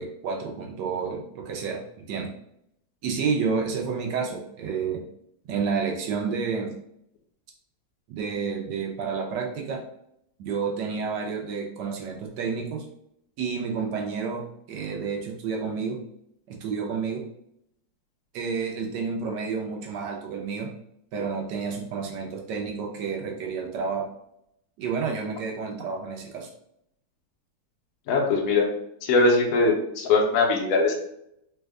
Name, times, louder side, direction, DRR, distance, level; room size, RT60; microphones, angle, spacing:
voice 1, 0.0-1.8 2.1-2.3 3.0-5.0 5.5-6.7 8.1-9.8 10.4-12.9 13.4-14.4 14.7-16.0 16.5-17.2 18.3-20.7 21.1-24.1 24.8-26.5, right 5 dB, 70° right, 0 dB, 1.1 m, -30 dB
voice 2, 28.1-28.7 29.0-30.9, left 3 dB, 65° left, 0 dB, 0.8 m, -21 dB
3.4 x 2.1 x 3.5 m, 0.75 s
omnidirectional pair, 2.2 m